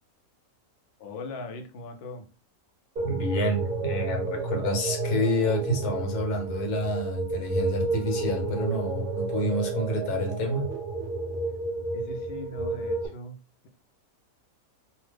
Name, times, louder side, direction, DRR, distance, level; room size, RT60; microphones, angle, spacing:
voice 1, 1.0-2.3 11.9-13.4, left 2 dB, 65° left, 4 dB, 0.6 m, -39 dB
voice 2, 3.0-10.7, left 1 dB, 80° left, 3 dB, 1.3 m, -28 dB
sound 1, 3.0-13.1, right 3 dB, 45° right, 0.7 m, -31 dB
2.8 x 2.1 x 3.2 m, 0.35 s
omnidirectional pair, 1.6 m